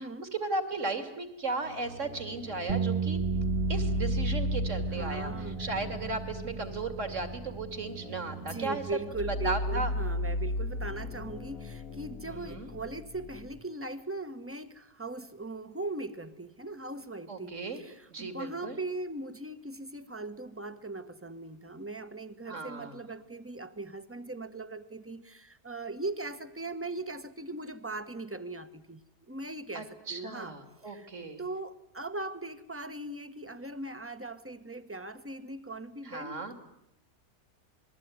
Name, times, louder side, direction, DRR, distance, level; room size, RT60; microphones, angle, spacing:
voice 1, 0.0-3.2 3.7-5.3 5.6-8.8 9.4-9.9 12.3-12.7 17.3-17.8 18.1-18.8 22.5-23.0 29.7-31.4 36.0-36.5, right 3 dB, 50° right, 8 dB, 3.2 m, -36 dB
sound 1, 1.6-13.6, left 1 dB, 65° left, 2.0 m, -36 dB
sound 2, 2.7-8.9, right 7 dB, 30° right, 1.4 m, -35 dB
voice 2, 4.9-5.7 8.4-29.0 29.3-30.6 30.8-31.1 31.4-36.5, right 2 dB, 10° right, 11 dB, 1.3 m, -39 dB
27.0 x 21.5 x 9.5 m, 0.81 s
omnidirectional pair, 1.6 m